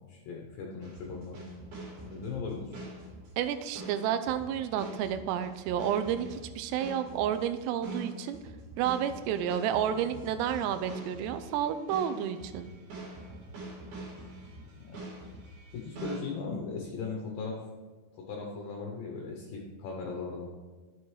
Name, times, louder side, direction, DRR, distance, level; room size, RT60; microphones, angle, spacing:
voice 1, 0.1-1.4 2.1-2.8 14.8-15.0 15.7-17.6 18.1-20.5, left 4 dB, 70° left, 0 dB, 2.2 m, -38 dB
sound 1, 0.8-16.2, right 2 dB, 65° right, 3.9 m, -44 dB
voice 2, 3.4-8.4 8.8-12.7, right 9 dB, 90° right, 10 dB, 2.7 m, -31 dB
11.5 x 6.9 x 3.2 m, 1.3 s
omnidirectional pair, 4.8 m